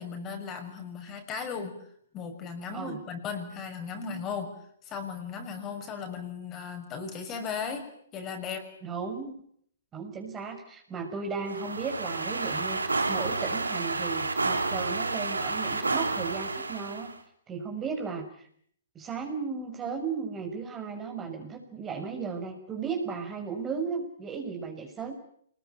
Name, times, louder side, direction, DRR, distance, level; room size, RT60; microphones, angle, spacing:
voice 1, 0.0-1.8 2.1-4.5 4.8-8.7, left 6 dB, 25° left, 5 dB, 6.6 m, -36 dB
voice 2, 8.8-9.5 9.9-17.1 17.5-18.5 18.9-25.1, right 5 dB, 20° right, 3 dB, 5.9 m, -35 dB
sound 1, 11.4-17.1, right 3 dB, 85° right, 3.4 m, -30 dB
27.5 x 21.0 x 9.1 m, 0.66 s
figure-of-eight pair, 125°, 0 cm